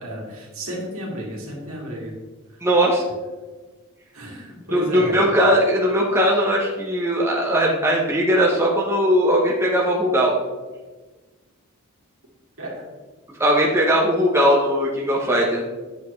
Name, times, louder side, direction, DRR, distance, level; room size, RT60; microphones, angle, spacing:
voice 1, 0.0-2.1 2.5-2.6 4.1-5.2 12.6-12.9, equal, 70° right, -3 dB, 2.2 m, -32 dB
voice 2, 2.6-3.0 4.7-10.3 13.4-15.6, equal, 10° right, -3 dB, 0.9 m, -19 dB
8.2 x 6.7 x 3.2 m, 1.3 s
head